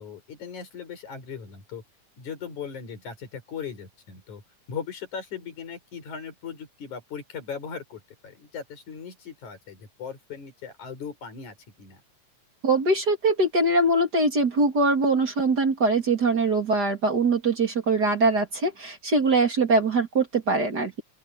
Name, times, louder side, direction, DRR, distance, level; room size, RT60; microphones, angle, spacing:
voice 1, 0.0-1.8 2.2-4.4 4.7-12.0, left 6 dB, 85° left, 6.1 m, -38 dB
voice 2, 12.6-21.0, right 2 dB, 35° right, 3.0 m, -22 dB
open air
omnidirectional pair, 3.3 m